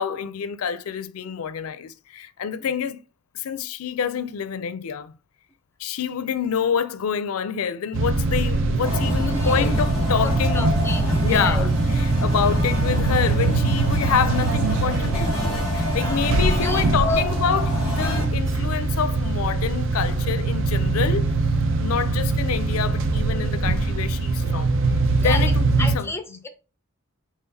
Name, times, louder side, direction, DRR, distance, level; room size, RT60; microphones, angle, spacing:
voice 1, 0.0-3.0 3.3-5.1 5.8-10.7 11.2-11.7 12.2-21.3 21.8-24.8 25.1-26.1, left 7 dB, 75° left, 0.4 m, -27 dB
sound 1, 7.9-26.0, right 3 dB, 60° right, 0.5 m, -23 dB
sound 2, 8.8-18.2, left 1 dB, 5° right, 1.7 m, -27 dB
voice 2, 9.2-9.7 10.2-11.7 15.9-16.2 16.6-17.3 25.2-25.5 25.8-26.5, left 2 dB, 10° left, 0.5 m, -31 dB
5.6 x 3.1 x 2.7 m
head